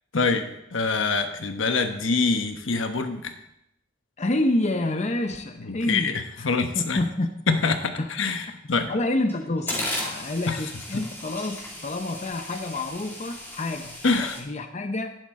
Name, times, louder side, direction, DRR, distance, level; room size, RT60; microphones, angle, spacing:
voice 1, 0.1-3.3 5.6-7.0 7.5-8.9 10.5-10.6 10.9-11.0 14.0-14.4, left 4 dB, 80° left, 7 dB, 1.1 m, -25 dB
voice 2, 4.2-6.5 6.7-7.3 8.0-8.1 8.7-15.2, left 2 dB, 35° left, 6 dB, 0.7 m, -28 dB
sound 1, 8.8-8.9 9.3-14.4, left 1 dB, 10° left, 2.3 m, -35 dB
11.5 x 10.5 x 3.7 m, 0.82 s
head